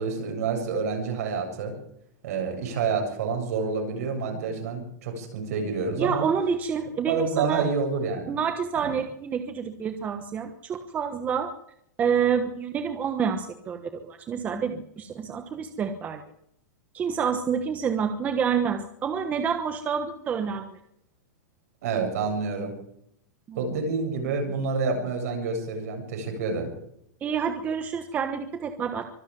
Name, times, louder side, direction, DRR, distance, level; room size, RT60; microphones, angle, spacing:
voice 1, 0.0-1.7 2.2-6.3 7.1-8.4 8.8-8.9 21.8-22.7 23.5-26.7, right 4 dB, 60° right, 4 dB, 7.6 m, -28 dB
voice 2, 6.0-7.6 8.3-11.5 12.0-16.2 16.9-20.8 23.5-23.6 27.2-29.0, right 7 dB, 15° right, 7 dB, 1.1 m, -28 dB
24.5 x 11.5 x 9.3 m, 0.75 s
supercardioid pair, 170°, 10 cm